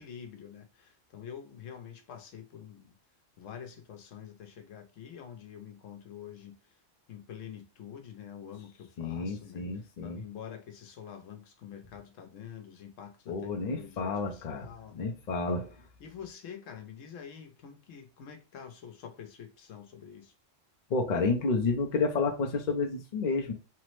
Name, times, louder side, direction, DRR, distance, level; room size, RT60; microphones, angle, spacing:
voice 1, 0.0-2.9 3.4-6.6 7.1-15.0 16.0-20.3, left 8 dB, 85° left, 1.0 m, -46 dB
voice 2, 9.0-10.2 13.3-15.7 20.9-23.5, left 4 dB, 55° left, 0.5 m, -30 dB
3.3 x 2.0 x 3.0 m
omnidirectional pair, 1.3 m